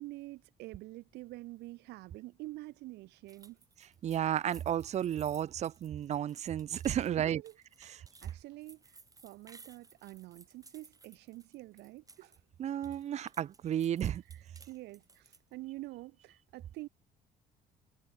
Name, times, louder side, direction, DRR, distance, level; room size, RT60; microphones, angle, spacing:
voice 1, 0.0-3.6 7.3-7.5 7.8-12.3 14.3-16.9, right 19 dB, 85° right, 1.6 m, -47 dB
sound 1, 3.3-12.4 12.7-15.5, right 3 dB, 20° right, 6.4 m, -59 dB
voice 2, 4.0-7.4 7.8-8.0 12.6-14.2, right 10 dB, 40° right, 0.4 m, -33 dB
cardioid pair, 110°, 17 cm